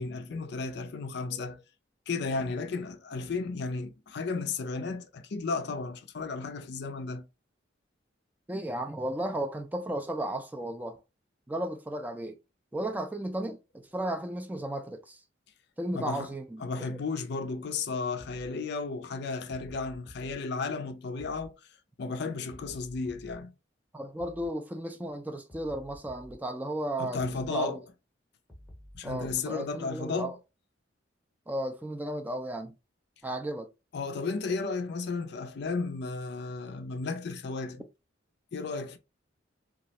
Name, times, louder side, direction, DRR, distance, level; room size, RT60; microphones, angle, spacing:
voice 1, 0.0-1.6 2.1-7.2 15.9-16.3 16.6-21.6 22.0-23.5 27.0-27.8 28.9-30.3 33.9-37.8 38.5-39.0, left 4 dB, 60° left, 0.4 m, -34 dB
voice 2, 8.5-11.0 11.5-12.4 12.7-15.2 15.8-16.9 23.9-27.8 29.0-30.3 31.5-32.7 33.2-33.7, right 1 dB, 10° right, 0.3 m, -34 dB
sound 1, 20.1-20.3 21.2-21.5 22.5-23.4 24.2-24.5 25.5-26.4 27.2-27.5 28.5-29.4, equal, 5° left, 0.8 m, -51 dB
3.0 x 2.4 x 2.8 m
head